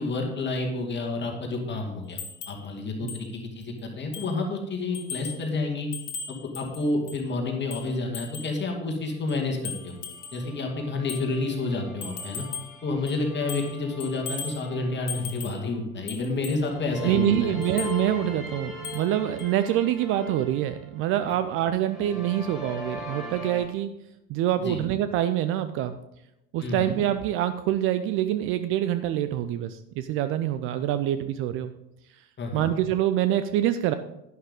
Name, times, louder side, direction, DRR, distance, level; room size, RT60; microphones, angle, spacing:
voice 1, 0.0-2.2 2.5-5.9 6.3-9.9 10.3-12.5 12.8-17.6 24.6-24.8 26.6-26.9 32.4-32.7, left 3 dB, 25° left, 1 dB, 2.4 m, -29 dB
sound 1, 2.2-2.6 3.1-3.2 3.6-3.7 4.1-4.4 4.9-5.5 5.9-7.3 7.7-8.6 9.3-10.4 11.1-11.3 12.0-12.8 13.1-13.8 14.0-14.6 15.1-15.6 16.1-16.6 17.6-18.0 18.8-19.1 19.4-19.5, left 5 dB, 70° left, 1.6 m, -38 dB
sound 2, 9.8-15.5 16.6-21.5 21.8-23.6, left 2 dB, ahead, 2.7 m, -40 dB
voice 2, 17.0-24.0 24.3-26.0 26.5-31.7 32.5-33.9, right 12 dB, 30° right, 11 dB, 0.5 m, -25 dB
11.0 x 11.0 x 3.7 m, 0.86 s
figure-of-eight pair, 75°, 47 cm